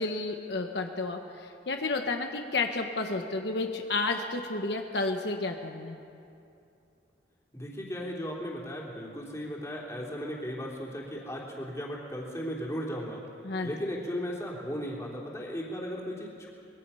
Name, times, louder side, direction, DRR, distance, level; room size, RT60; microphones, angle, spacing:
voice 1, 0.0-6.0 13.4-13.7, left 3 dB, 70° left, 4 dB, 1.3 m, -31 dB
voice 2, 7.5-13.2 13.6-16.5, equal, 15° left, -2 dB, 3.1 m, -36 dB
24.5 x 22.0 x 5.7 m, 2.6 s
head